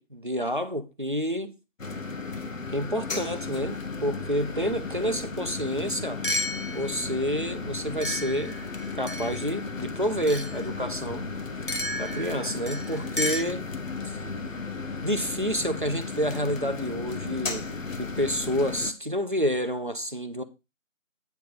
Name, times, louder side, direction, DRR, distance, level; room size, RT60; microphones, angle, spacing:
voice 1, 0.0-1.5 2.7-6.2 6.7-8.6 8.9-11.3 12.0-13.6 14.0-14.2 15.0-17.7 18.0-20.4, equal, 40° right, 0.7 m, -29 dB
sound 1, 1.8-18.9, left 4 dB, 75° left, 1.1 m, -35 dB
sound 2, 5.6-5.7 6.2-7.1 8.0-9.6 10.3-10.6 11.7-13.4, left 1 dB, 40° left, 0.8 m, -32 dB
9.1 x 3.5 x 6.4 m
figure-of-eight pair, 175°, 39 cm